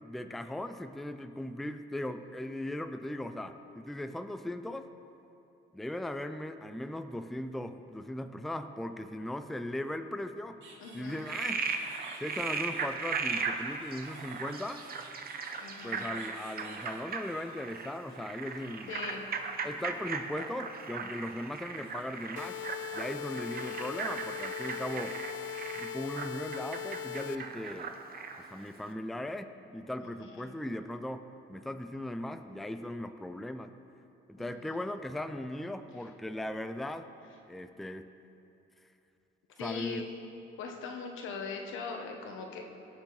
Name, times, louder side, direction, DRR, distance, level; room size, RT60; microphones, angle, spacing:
voice 1, 0.0-4.9 5.7-10.6 10.9-11.7 12.2-14.8 15.8-19.2 19.6-22.6 22.9-25.2 25.8-27.9 28.4-33.7 34.3-37.1 37.5-38.1 39.6-40.0, left 1 dB, ahead, 9 dB, 0.4 m, -38 dB
sound 1, 10.6-19.2 19.5-20.5 21.0-24.1 24.6-25.5 25.8-26.1 27.0-27.7, right 3 dB, 70° right, 1.9 m, -55 dB
voice 2, 10.8-11.3 15.6-16.1 18.9-19.3 30.0-30.5 34.4-34.6 39.6-40.0 40.6-42.6, left 5 dB, 85° left, 2 dB, 1.2 m, -41 dB
Frog, 11.1-28.5, right 5 dB, 50° right, 0.9 m, -38 dB
sound 2, 22.4-27.4, left 9 dB, 70° left, 0.5 m, -40 dB
17.5 x 6.4 x 4.0 m, 2.8 s
cardioid pair, 90°, 20 cm